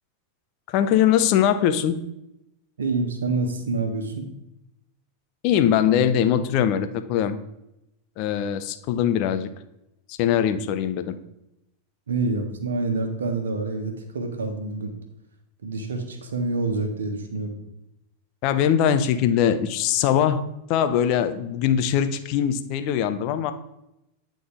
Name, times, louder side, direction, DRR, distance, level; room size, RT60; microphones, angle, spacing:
voice 1, 0.7-2.0 5.4-7.4 8.2-9.5 10.1-11.2 18.4-23.5, left 9 dB, 45° left, 9 dB, 0.7 m, -22 dB
voice 2, 2.8-4.3 12.1-14.9 15.6-17.6, right 3 dB, 75° right, 5 dB, 1.4 m, -27 dB
9.6 x 3.9 x 5.0 m, 0.86 s
figure-of-eight pair, 90°, 0 cm